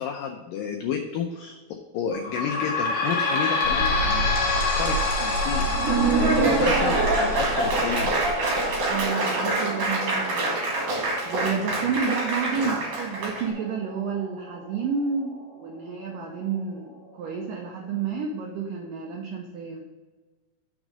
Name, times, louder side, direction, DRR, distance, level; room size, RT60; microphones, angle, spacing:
voice 1, 0.0-1.6 1.9-8.1 12.6-12.8, left 7 dB, 90° left, 4 dB, 1.9 m, -32 dB
sound 1, 2.1-15.3 15.8-15.9 16.2-16.3 17.1-17.2, left 3 dB, 60° left, 1.2 m, -29 dB
Mechanical fan, 3.6-9.0, right 1 dB, 40° right, 3.5 m, -30 dB
Laughter / Applause, 5.6-13.4, right 2 dB, 55° right, 3.2 m, -25 dB
voice 2, 8.9-10.6 11.3-19.8, right 5 dB, 85° right, 0 dB, 1.9 m, -30 dB
6.3 x 6.2 x 5.1 m, 1.3 s
omnidirectional pair, 4.8 m